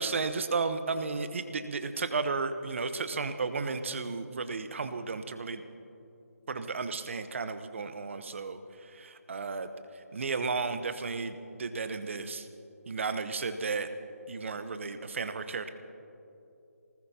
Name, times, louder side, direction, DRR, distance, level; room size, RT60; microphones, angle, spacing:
voice 1, 0.0-5.6 6.5-9.7 10.1-12.5 12.9-13.9 14.3-15.7, right 4 dB, 50° right, 10 dB, 1.0 m, -33 dB
25.5 x 19.5 x 2.9 m, 2.8 s
figure-of-eight pair, 155°, 8 cm